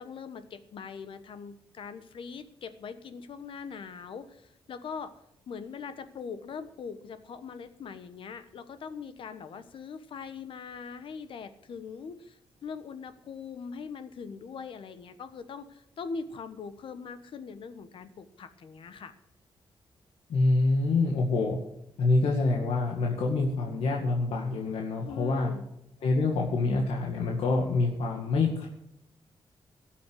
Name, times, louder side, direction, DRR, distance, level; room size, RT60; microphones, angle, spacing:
voice 1, 0.0-5.1 5.5-19.1 25.0-25.7, left 5 dB, 65° left, 11 dB, 1.2 m, -41 dB
voice 2, 20.3-21.6 22.0-25.5 26.0-28.7, left 3 dB, 85° left, -1 dB, 2.1 m, -26 dB
17.5 x 7.1 x 6.4 m, 0.82 s
wide cardioid pair, 140°, 10 cm